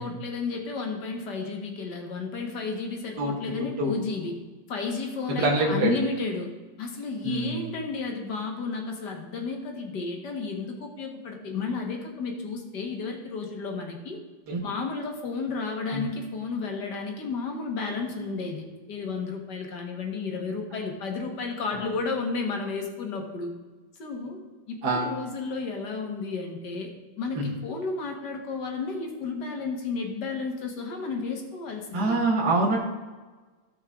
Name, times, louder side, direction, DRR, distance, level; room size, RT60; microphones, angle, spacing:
voice 1, 0.0-4.3 4.7-6.5 6.8-14.2 14.6-23.5 24.0-24.4 24.7-26.9 27.2-32.2, left 4 dB, 60° left, 2 dB, 2.0 m, -32 dB
voice 2, 5.3-5.9 7.2-7.7 14.5-14.6 15.9-16.0 24.8-25.1 27.4-27.5 31.9-32.8, right 2 dB, 55° right, -3 dB, 2.0 m, -25 dB
16.5 x 5.5 x 3.6 m, 1.3 s
omnidirectional pair, 2.1 m